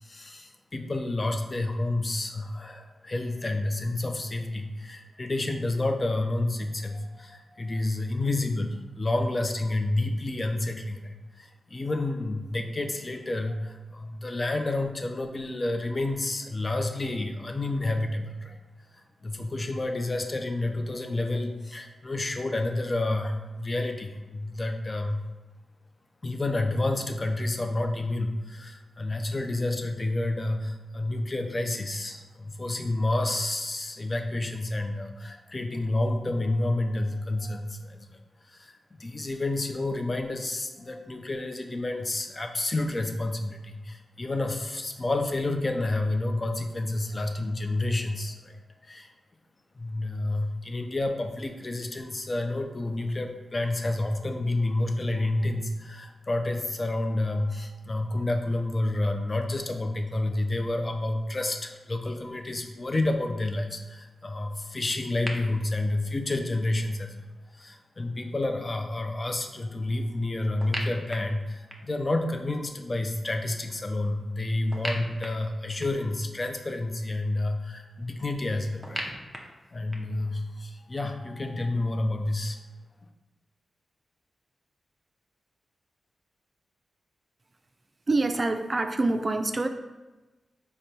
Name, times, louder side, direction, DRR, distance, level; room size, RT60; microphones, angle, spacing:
voice 1, 0.0-18.6 18.9-25.2 26.2-48.6 48.8-49.1 49.8-67.1 67.5-79.1 79.7-82.6, left 2 dB, 40° left, 5 dB, 0.5 m, -29 dB
sound 1, 65.3-65.4 70.6-72.0 74.7-76.1 78.8-80.2, equal, 5° right, 0.7 m, -37 dB
voice 2, 88.1-89.7, right 2 dB, 40° right, 7 dB, 0.3 m, -26 dB
3.8 x 2.2 x 4.3 m, 1.1 s
cardioid pair, 45°, 0 cm